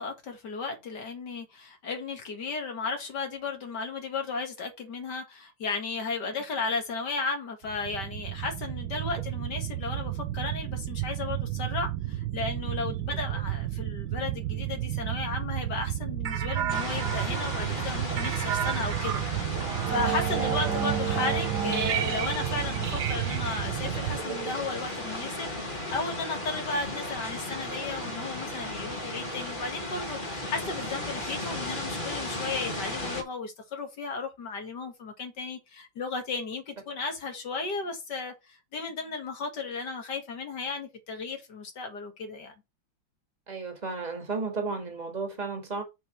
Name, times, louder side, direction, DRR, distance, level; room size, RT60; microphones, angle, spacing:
voice 1, 0.0-42.5, left 4 dB, 60° left, 2.3 m, -35 dB
sound 1, 7.6-24.2, right 13 dB, 80° right, 1.6 m, -33 dB
sound 2, 16.2-25.2, right 9 dB, 65° right, 1.3 m, -33 dB
sound 3, 16.7-33.2, left 1 dB, 25° left, 2.0 m, -35 dB
voice 2, 20.4-20.7 43.5-45.8, right 4 dB, 20° right, 2.1 m, -33 dB
6.1 x 5.4 x 4.6 m
omnidirectional pair, 2.2 m